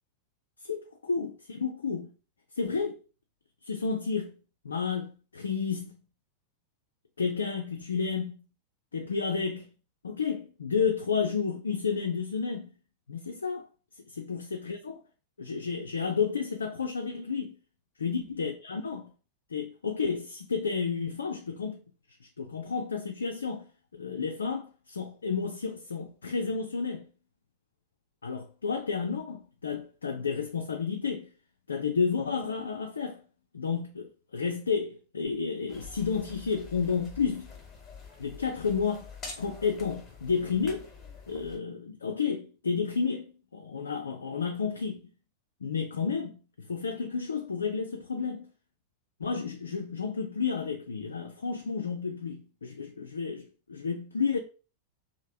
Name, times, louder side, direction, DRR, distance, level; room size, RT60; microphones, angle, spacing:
voice 1, 0.6-2.1 2.6-3.0 3.6-4.3 4.6-5.9 7.2-8.4 8.9-9.7 10.0-12.7 13.1-13.7 14.0-15.0 15.4-17.6 18.0-19.1 19.5-21.8 22.4-27.1 28.2-31.3 31.7-33.2 33.5-37.5 38.2-39.1 39.4-40.9 41.3-45.1 45.6-48.5 49.2-54.4, left 5 dB, 70° left, 0.3 m, -31 dB
sound 1, 35.7-41.6, left 4 dB, 20° left, 1.1 m, -46 dB
2.8 x 2.5 x 2.6 m
figure-of-eight pair, 90°, 0 cm